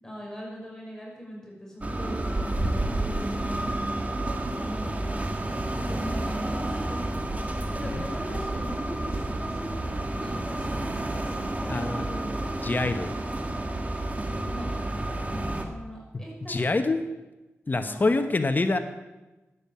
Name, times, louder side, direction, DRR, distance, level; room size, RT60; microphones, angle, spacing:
voice 1, 0.0-3.9 4.4-12.4 14.3-14.7 15.2-16.5 17.7-18.2, equal, 10° left, -3 dB, 6.5 m, -41 dB
sound 1, 1.8-15.6, right 1 dB, 30° right, 1.8 m, -30 dB
voice 2, 11.7-12.0 12.6-13.1 16.5-17.0 17.7-18.8, left 3 dB, 40° left, 8 dB, 1.1 m, -25 dB
12.5 x 10.5 x 8.5 m, 1.1 s
wide cardioid pair, 70°, 5 cm